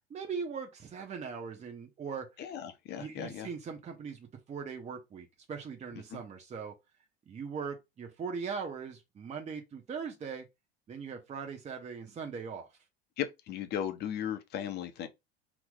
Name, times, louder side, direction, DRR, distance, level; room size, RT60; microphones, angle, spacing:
voice 1, 0.1-2.3 3.0-6.7 7.3-10.5 10.9-12.7, right 6 dB, 20° right, 0.8 m, -40 dB
voice 2, 2.4-3.5 6.1-6.2 13.2-15.1, left 9 dB, 30° left, 0.5 m, -36 dB
2.9 x 2.0 x 3.5 m
figure-of-eight pair, 70°, 32 cm